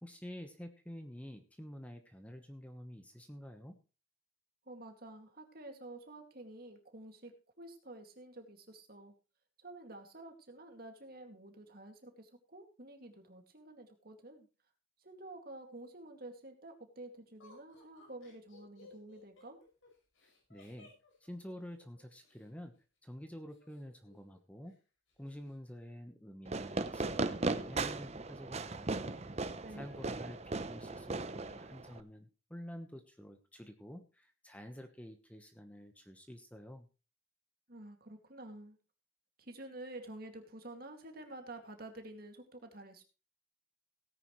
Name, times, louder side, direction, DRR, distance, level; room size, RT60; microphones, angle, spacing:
voice 1, 0.0-3.8 20.2-20.9 21.2-24.8 25.2-28.9 29.7-36.9, equal, 5° left, 6 dB, 1.1 m, -49 dB
voice 2, 4.7-9.2 9.6-14.5 15.0-19.6 29.6-29.9 37.7-38.8 39.4-43.0, right 2 dB, 50° right, 4 dB, 2.3 m, -50 dB
Laughter, 17.4-22.5 23.5-24.4 24.7-24.8 25.1-25.5, left 3 dB, 85° left, 6.3 m, -61 dB
Fireworks, 26.4-32.0, right 3 dB, 35° right, 0.7 m, -37 dB
17.5 x 9.9 x 3.2 m, 0.33 s
head